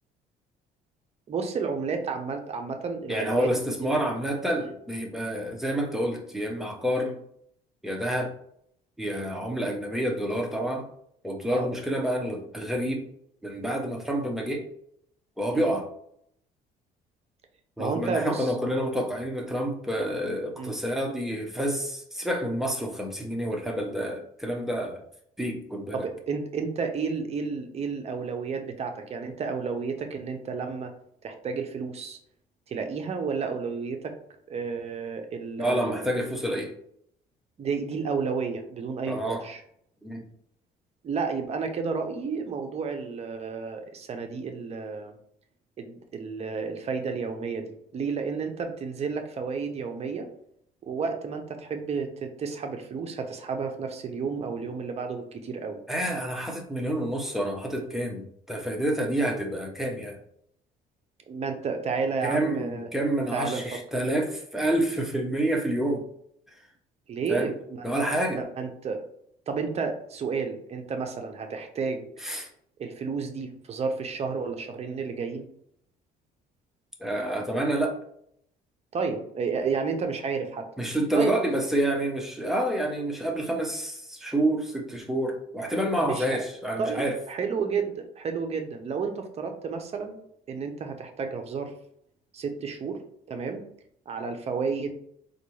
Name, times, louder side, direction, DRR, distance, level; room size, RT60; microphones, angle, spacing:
voice 1, 1.3-3.5 3.8-4.0 4.6-4.7 7.0-7.2 11.5-11.7 15.5-15.8 17.8-18.5 20.5-20.7 25.9-30.9 31.2-32.2 32.7-34.2 34.5-36.0 37.6-39.6 41.0-45.1 45.8-50.3 50.8-55.8 61.3-62.9 63.3-63.6 67.1-67.9 68.3-69.0 69.5-72.1 72.8-75.5 78.9-80.7 81.1-81.5 86.0-86.4 86.8-90.2 90.5-91.7 92.3-93.0 93.3-93.6 94.1-95.0, right 5 dB, 40° right, 5 dB, 0.6 m, -31 dB
voice 2, 3.1-7.1 7.8-8.3 9.0-10.9 11.2-13.0 13.4-14.6 15.4-15.9 17.8-25.0 25.4-26.0 35.6-36.7 39.1-39.4 40.0-40.2 55.9-60.2 62.2-66.0 67.3-67.5 67.8-68.4 72.2-72.5 77.0-78.0 80.8-87.2, right 1 dB, ahead, 1 dB, 0.7 m, -28 dB
3.9 x 2.3 x 3.1 m, 0.69 s
cardioid pair, 110°, 17 cm